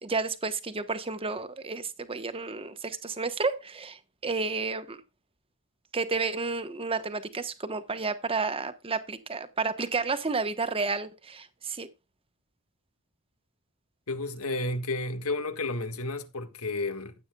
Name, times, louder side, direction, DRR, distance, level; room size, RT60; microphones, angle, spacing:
voice 1, 0.0-5.0 5.9-11.9, right 4 dB, 25° right, 1.1 m, -31 dB
voice 2, 14.1-17.1, left 2 dB, 80° left, 1.7 m, -32 dB
15.0 x 8.9 x 2.3 m
head